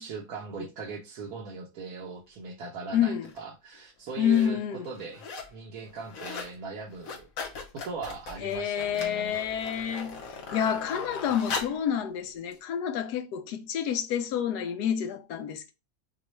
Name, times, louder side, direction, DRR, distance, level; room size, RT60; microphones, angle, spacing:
voice 1, 0.0-4.6 4.8-7.3 7.7-9.4, right 4 dB, 70° right, 1.2 m, -39 dB
voice 2, 2.9-3.3 4.2-4.9 8.4-15.7, left 9 dB, 80° left, 1.2 m, -28 dB
sound 1, 3.2-3.4 4.1-4.5 4.8-5.6 5.9-6.5 6.9-11.9 12.5-12.6, left 5 dB, 60° left, 1.3 m, -39 dB
6.2 x 2.3 x 3.0 m
omnidirectional pair, 1.7 m